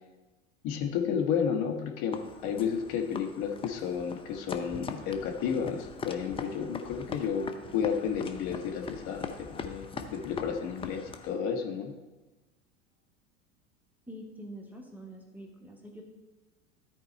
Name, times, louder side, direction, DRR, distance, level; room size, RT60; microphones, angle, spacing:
voice 1, 0.6-11.9, left 7 dB, 50° left, 3 dB, 1.4 m, -32 dB
sound 1, 2.1-11.4, left 5 dB, 15° left, 0.6 m, -42 dB
voice 2, 14.1-16.0, equal, 5° right, 1 dB, 1.2 m, -45 dB
13.0 x 4.4 x 4.4 m, 1.2 s
figure-of-eight pair, 85°, 40 cm